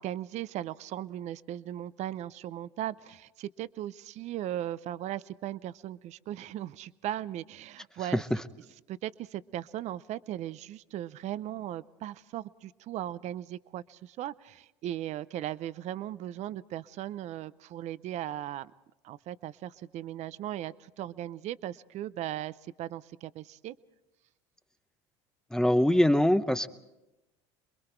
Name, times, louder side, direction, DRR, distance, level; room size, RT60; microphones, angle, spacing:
voice 1, 0.0-8.2 8.9-18.7 19.0-23.8, right 12 dB, 50° right, 17 dB, 0.6 m, -38 dB
voice 2, 25.5-26.7, left 1 dB, 5° left, 11 dB, 0.8 m, -23 dB
27.5 x 22.0 x 4.5 m, 0.97 s
supercardioid pair, 95°, 15 cm